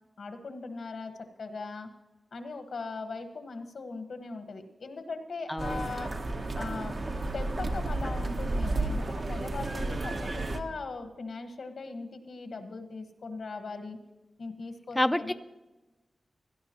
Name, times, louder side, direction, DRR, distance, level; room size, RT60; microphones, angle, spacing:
voice 1, 0.2-1.1 1.4-1.9 2.3-6.1 6.5-7.0 7.3-14.0 14.4-15.3, left 3 dB, 80° left, 7 dB, 1.3 m, -39 dB
voice 2, 5.5-5.9 15.0-15.3, left 1 dB, 10° left, 9 dB, 0.4 m, -28 dB
sound 1, 5.6-10.6, right 2 dB, 50° right, 0.9 m, -32 dB
17.0 x 11.0 x 2.9 m, 1.1 s
wide cardioid pair, 100°, 0 cm